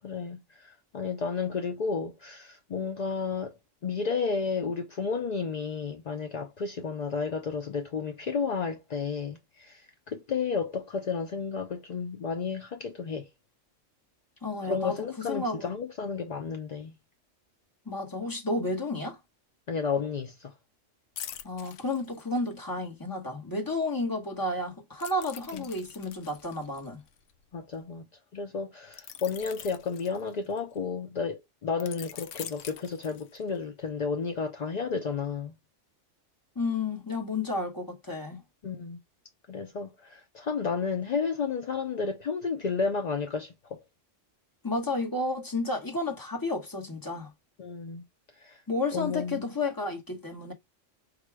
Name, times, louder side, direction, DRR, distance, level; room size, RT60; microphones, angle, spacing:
voice 1, 0.0-3.5 3.8-13.3 14.6-16.9 19.7-20.5 25.5-25.7 27.5-28.0 28.3-35.5 38.6-39.0 39.5-43.8 47.6-48.0 48.4-48.6 48.9-49.5, left 5 dB, 55° left, 0.5 m, -32 dB
voice 2, 14.4-15.7 17.9-19.2 21.4-27.0 36.5-38.4 44.6-47.3 48.7-50.5, left 2 dB, 20° left, 1.0 m, -31 dB
sound 1, 21.2-22.7 25.0-27.7 28.9-30.8 31.8-33.6 34.1-34.3, left 10 dB, 75° left, 0.9 m, -44 dB
4.9 x 2.2 x 4.6 m
omnidirectional pair, 1.3 m